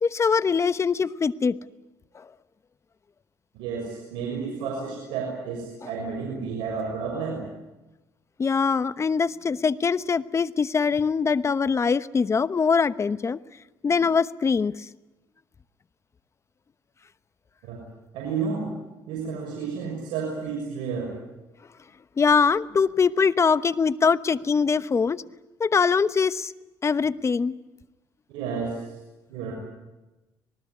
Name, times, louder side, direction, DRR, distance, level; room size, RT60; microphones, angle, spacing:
voice 1, 0.0-1.6 2.1-2.3 8.4-13.4 13.8-14.9 22.2-25.2 25.6-26.5 26.8-27.5, left 5 dB, 35° left, 15 dB, 1.0 m, -23 dB
voice 2, 3.5-7.5 17.6-17.8 18.1-18.7 19.1-21.1 28.3-28.8 29.3-29.5, right 5 dB, 90° right, -1 dB, 6.6 m, -31 dB
26.0 x 19.5 x 9.8 m, 1.0 s
supercardioid pair, 75°, 8 cm